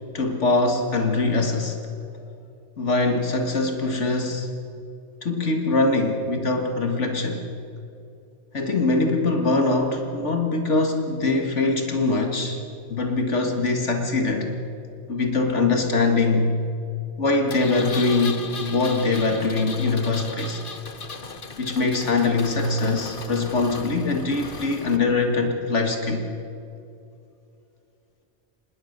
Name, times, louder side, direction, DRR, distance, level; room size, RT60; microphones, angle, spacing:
voice 1, 0.1-1.8 2.8-4.5 5.2-7.4 8.5-12.6 12.9-14.5 15.1-16.6 17.2-20.6 21.6-26.2, left 3 dB, 75° left, 4 dB, 2.1 m, -23 dB
Engine, 17.5-25.0, left 4 dB, 45° left, 1.4 m, -37 dB
26.0 x 20.5 x 6.6 m, 2.6 s
omnidirectional pair, 1.2 m